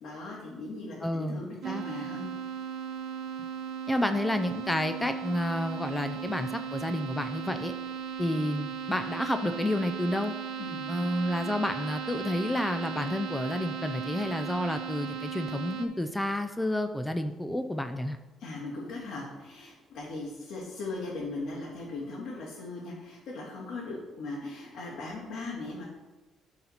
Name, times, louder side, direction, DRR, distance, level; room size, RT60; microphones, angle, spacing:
voice 1, 0.0-2.3 10.6-11.1 18.4-25.8, left 2 dB, 65° left, -6 dB, 1.9 m, -39 dB
voice 2, 1.0-1.8 3.9-7.7 8.2-10.3 10.9-18.2, left 1 dB, 5° left, 8 dB, 0.4 m, -30 dB
sound 1, 1.6-15.9, right 7 dB, 75° right, 1.0 m, -37 dB
11.5 x 4.1 x 4.3 m, 1.2 s
cardioid pair, 155°, 0 cm